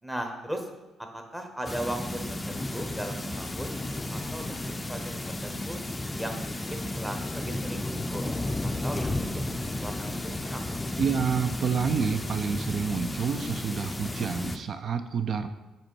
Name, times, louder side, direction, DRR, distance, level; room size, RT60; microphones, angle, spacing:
voice 1, 0.0-0.7 1.1-2.2 2.5-3.8 4.1-5.1 5.4-5.8 6.1-8.3 8.6-9.5 9.8-10.7, right 1 dB, 10° right, 4 dB, 0.9 m, -37 dB
sound 1, 1.6-14.6, left 1 dB, 15° left, 0.4 m, -33 dB
voice 2, 11.0-15.5, right 6 dB, 55° right, 10 dB, 0.4 m, -28 dB
5.0 x 4.4 x 4.6 m, 1.1 s
cardioid pair, 90°, 0 cm